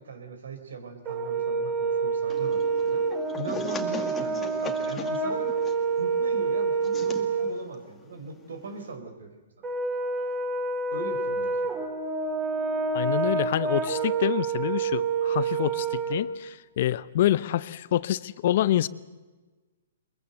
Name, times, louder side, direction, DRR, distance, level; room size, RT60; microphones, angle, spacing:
voice 1, 0.0-3.1 3.4-5.5 6.0-9.3 9.6-9.7 10.9-11.9, right 4 dB, 75° right, 9 dB, 4.0 m, -40 dB
Brass instrument, 1.0-7.5 9.6-16.2, right 4 dB, 25° right, 4.2 m, -28 dB
sound 1, 2.3-8.9, left 6 dB, 15° left, 2.0 m, -41 dB
voice 2, 12.9-18.9, left 12 dB, 55° left, 18 dB, 0.8 m, -27 dB
22.5 x 22.0 x 8.0 m, 1.3 s
hypercardioid pair, 130°, 0 cm